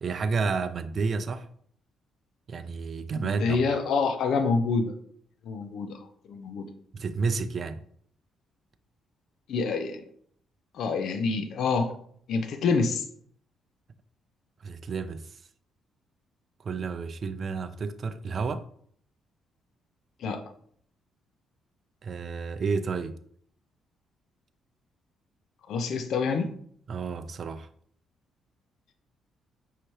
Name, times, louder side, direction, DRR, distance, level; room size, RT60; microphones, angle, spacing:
voice 1, 0.0-1.5 2.5-3.6 6.9-7.9 14.6-15.4 16.6-18.7 22.0-23.2 26.9-27.7, right 4 dB, 50° right, 0.4 m, -31 dB
voice 2, 3.2-4.9 5.4-6.7 9.5-10.0 10.7-11.9 12.3-13.0 20.2-20.4 25.7-26.5, left 4 dB, 70° left, 0.5 m, -27 dB
5.6 x 2.8 x 3.1 m
cardioid pair, 90°, 0 cm